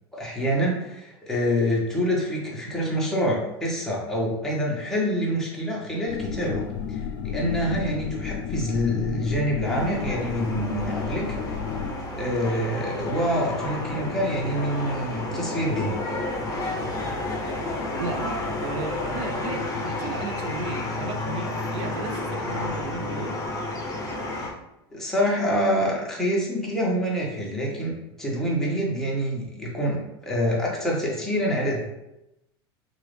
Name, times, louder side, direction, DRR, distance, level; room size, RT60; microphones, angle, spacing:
voice 1, 0.1-6.6 6.9-11.3 12.2-16.0 24.9-31.8, equal, 5° left, -5 dB, 1.2 m, -26 dB
sound 1, 6.1-11.9, left 7 dB, 60° left, 0.4 m, -32 dB
sound 2, 9.6-24.5, left 2 dB, 30° left, 0.9 m, -31 dB
voice 2, 18.0-23.4, right 3 dB, 50° right, 4 dB, 0.6 m, -34 dB
3.0 x 2.5 x 3.4 m, 0.90 s
hypercardioid pair, 90°, 13 cm